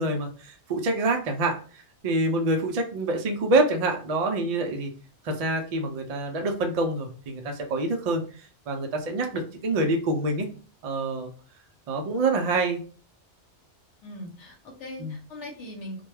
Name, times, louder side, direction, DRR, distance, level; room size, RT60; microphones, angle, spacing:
voice 1, 0.0-4.9 5.2-10.5 10.8-11.3 11.9-12.8 15.0-15.2, right 2 dB, 70° right, 3 dB, 0.3 m, -26 dB
voice 2, 14.0-16.0, left 1 dB, 90° left, 1 dB, 1.0 m, -40 dB
2.3 x 2.2 x 3.1 m, 0.39 s
omnidirectional pair, 1.2 m